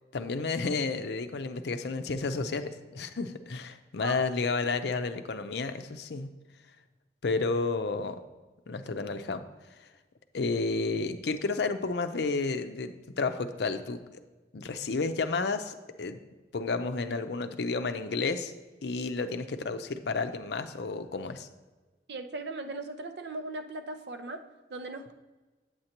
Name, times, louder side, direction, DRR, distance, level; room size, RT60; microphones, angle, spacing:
voice 1, 0.1-6.3 7.2-8.2 8.7-9.4 10.3-14.2 14.5-16.2 16.5-18.5 18.8-21.5, left 3 dB, 65° left, 9 dB, 0.5 m, -31 dB
voice 2, 22.1-24.4 24.7-25.1, right 2 dB, 65° right, 7 dB, 0.6 m, -38 dB
8.7 x 7.8 x 2.9 m, 1.2 s
head